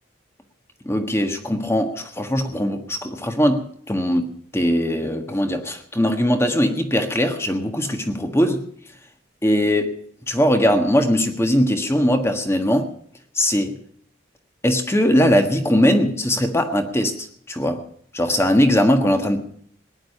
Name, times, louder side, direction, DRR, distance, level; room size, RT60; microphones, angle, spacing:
voice 1, 0.8-8.6 9.4-10.0 10.3-12.9 13.3-13.8 14.6-17.8 18.1-19.4, equal, 15° left, 6 dB, 1.5 m, -20 dB
18.0 x 10.5 x 6.7 m, 0.62 s
head